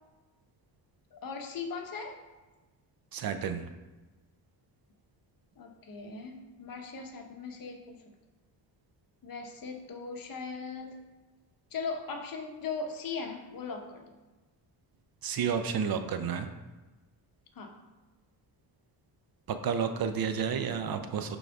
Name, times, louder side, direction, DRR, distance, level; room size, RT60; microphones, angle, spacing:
voice 1, 1.1-2.2 5.6-8.0 9.2-11.0 11.7-14.0 17.5-17.8, left 4 dB, 50° left, 3 dB, 1.1 m, -39 dB
voice 2, 3.1-3.7 15.2-16.5 19.5-21.4, right 7 dB, 55° right, 8 dB, 0.6 m, -31 dB
10.5 x 3.9 x 3.5 m, 1.2 s
cardioid pair, 140°, 44 cm